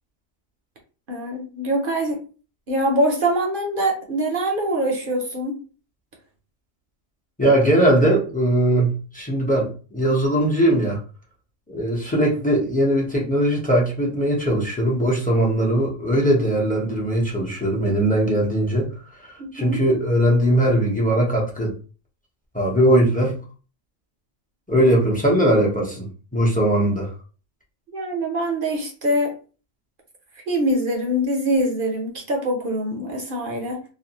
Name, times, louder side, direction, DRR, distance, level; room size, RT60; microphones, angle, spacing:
voice 1, 1.1-2.2 2.7-5.6 19.4-19.8 27.9-29.3 30.5-33.8, right 1 dB, 55° right, 1 dB, 0.7 m, -24 dB
voice 2, 7.4-11.0 11.7-18.9 19.2-21.7 22.5-23.4 24.7-27.1, right 1 dB, 10° left, -2 dB, 0.5 m, -20 dB
2.5 x 2.2 x 2.8 m, 0.36 s
omnidirectional pair, 1.4 m